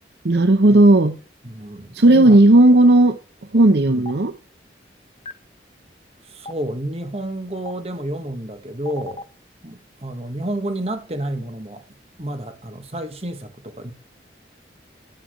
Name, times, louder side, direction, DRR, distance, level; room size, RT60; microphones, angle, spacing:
voice 1, 0.2-1.2 1.9-3.2 3.5-4.3, right 1 dB, 65° right, 0.8 m, -13 dB
voice 2, 1.4-2.4 3.8-4.1 6.3-9.2 9.6-11.8 12.2-13.9, right 1 dB, 35° right, 1.6 m, -30 dB
Stream, 4.1-4.2 5.3-5.4 6.5-6.6 7.7-7.8 8.9-9.2, left 2 dB, 30° left, 0.8 m, -33 dB
11.5 x 8.8 x 3.2 m
head